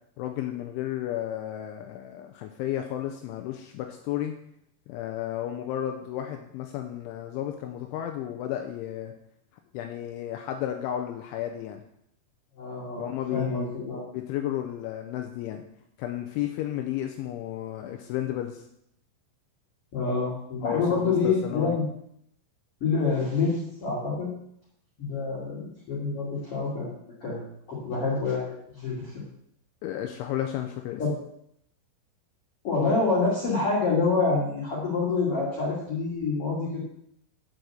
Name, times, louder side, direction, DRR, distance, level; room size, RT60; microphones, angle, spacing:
voice 1, 0.2-4.3 4.9-9.1 9.7-11.8 13.0-13.9 14.1-15.6 16.0-18.6 20.6-21.8 29.8-31.0, left 12 dB, 85° left, 4 dB, 2.9 m, -33 dB
voice 2, 12.6-14.0 19.9-21.9 22.8-24.3 25.0-26.9 27.2-27.4 27.7-29.2 31.0-31.1 32.6-36.8, left 4 dB, 40° left, -7 dB, 2.4 m, -27 dB
7.3 x 6.5 x 7.6 m, 0.73 s
omnidirectional pair, 5.9 m